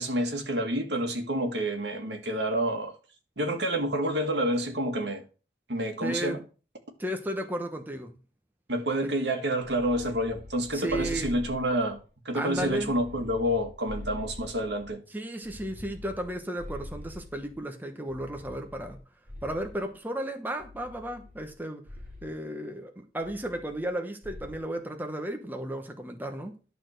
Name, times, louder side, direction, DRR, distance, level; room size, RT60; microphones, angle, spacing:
voice 1, 0.0-2.9 3.4-5.2 5.7-6.4 8.7-12.0 12.3-15.0, right 1 dB, 75° right, 2.0 m, -28 dB
voice 2, 6.0-6.4 7.0-8.1 10.7-11.4 12.3-12.9 15.1-19.0 19.4-21.8 22.2-26.6, right 1 dB, 10° right, 1.0 m, -34 dB
sound 1, 9.6-12.0 12.5-15.0 15.4-17.6 18.1-20.0 20.6-21.6 21.8-22.3 23.2-23.9 24.2-24.7, left 1 dB, 50° right, 2.2 m, -44 dB
11.5 x 4.2 x 6.6 m
head